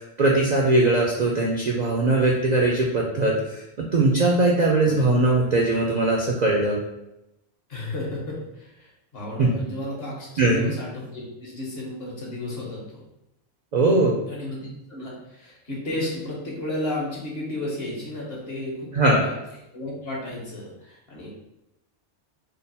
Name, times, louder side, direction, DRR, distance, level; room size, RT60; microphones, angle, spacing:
voice 1, 0.0-6.8 9.4-9.5 10.4-10.7 13.7-14.1 18.9-19.2, right 2 dB, 55° right, -2 dB, 0.4 m, -20 dB
voice 2, 4.8-5.1 7.7-13.0 14.3-19.4 19.7-21.3, left 1 dB, 55° left, -4 dB, 1.3 m, -33 dB
3.7 x 2.0 x 4.0 m, 0.87 s
omnidirectional pair, 1.2 m